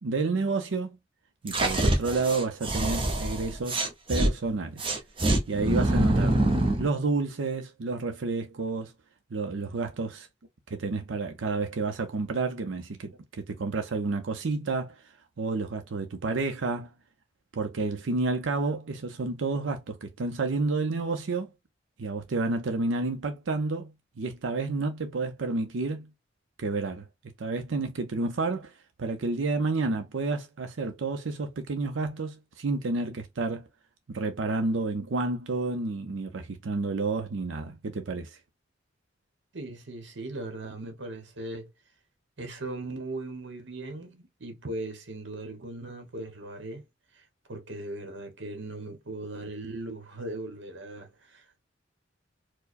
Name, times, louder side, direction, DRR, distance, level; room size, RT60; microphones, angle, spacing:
voice 1, 0.0-1.0 1.4-3.8 4.1-4.8 5.5-6.4 6.8-8.9 9.3-10.3 10.7-15.0 15.4-16.9 17.5-21.5 22.0-26.1 26.6-27.1 27.4-28.7 29.0-33.7 34.1-38.4, right 3 dB, 85° right, 0.6 m, -30 dB
sound 1, 1.5-4.3 4.8-6.9, right 1 dB, 30° right, 0.8 m, -25 dB
voice 2, 39.5-41.7 42.4-46.8 47.1-51.6, right 2 dB, 70° right, 1.0 m, -39 dB
4.6 x 2.2 x 2.5 m
head